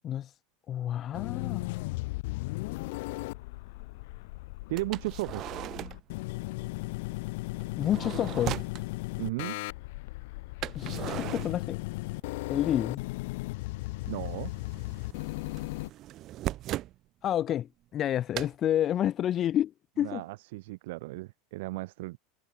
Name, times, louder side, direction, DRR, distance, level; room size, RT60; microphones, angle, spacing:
voice 1, 0.7-1.7 7.7-8.6 10.7-11.8 12.5-13.0 17.2-19.7 20.0-20.2, left 11 dB, 30° left, 0.7 m, -29 dB
sound 1, 1.1-15.9, left 22 dB, 65° left, 0.6 m, -36 dB
sound 2, 1.7-1.8 2.4-2.5 4.8-6.1 7.6-8.8 10.6-12.3 12.5-13.4 13.7-17.0 18.3-18.5, right 14 dB, 40° right, 1.9 m, -38 dB
voice 2, 4.7-5.5 9.2-9.6 14.1-14.5 20.0-22.2, right 21 dB, 70° right, 0.5 m, -35 dB
supercardioid pair, 145°, 0 cm